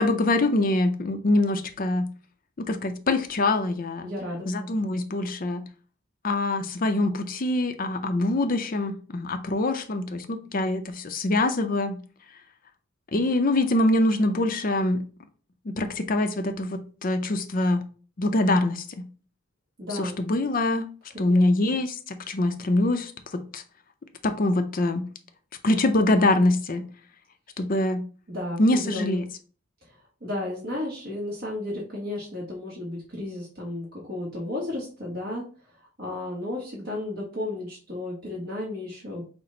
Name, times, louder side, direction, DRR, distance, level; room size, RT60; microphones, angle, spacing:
voice 1, 0.0-2.1 2.6-4.1 4.5-5.6 6.2-12.0 13.1-15.0 15.6-17.8 18.2-18.9 19.9-20.9 21.2-23.6 24.2-25.0 25.6-26.8 27.6-28.0 28.6-29.2, left 2 dB, 45° left, 0.6 m, -24 dB
voice 2, 4.0-4.5 19.8-20.2 21.1-21.7 28.3-29.2 29.8-39.2, left 1 dB, 50° right, 1.2 m, -34 dB
5.8 x 2.1 x 3.8 m
head